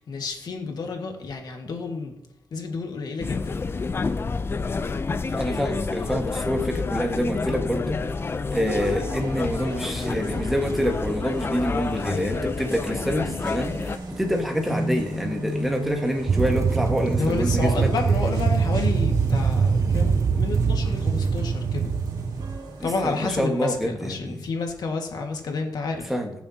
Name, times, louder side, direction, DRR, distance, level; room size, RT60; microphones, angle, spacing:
voice 1, 0.0-2.1 2.5-3.5 14.7-15.0 17.2-21.9 22.8-26.1, left 4 dB, 70° left, 3 dB, 1.8 m, -30 dB
sound 1, 3.2-14.0, left 4 dB, 35° left, 0.5 m, -29 dB
voice 2, 5.2-8.0 8.5-17.9 22.8-24.4 26.1-26.3, equal, 5° right, 2 dB, 1.6 m, -27 dB
sound 2, 8.5-23.4, right 1 dB, 80° right, 2.3 m, -37 dB
sound 3, 16.3-22.6, right 5 dB, 40° right, 0.5 m, -23 dB
21.0 x 7.2 x 2.9 m, 0.84 s
wide cardioid pair, 120°, 7 cm